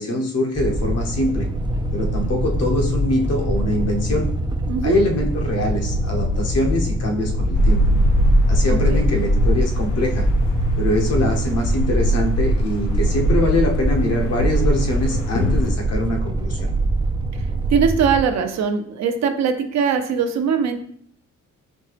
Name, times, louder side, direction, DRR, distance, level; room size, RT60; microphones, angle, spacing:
voice 1, 0.0-1.5 1.9-4.3 4.8-7.8 8.5-10.3 10.8-16.7, left 1 dB, 55° left, 1 dB, 1.0 m, -23 dB
sound 1, 0.5-18.2, right 1 dB, 15° right, 0.4 m, -24 dB
voice 2, 4.7-5.0 8.7-9.0 17.3-20.8, right 6 dB, 65° right, 6 dB, 0.7 m, -21 dB
sound 2, 7.5-15.7, equal, 80° left, 0.8 m, -21 dB
4.3 x 2.8 x 3.3 m, 0.63 s
cardioid pair, 90°, 30 cm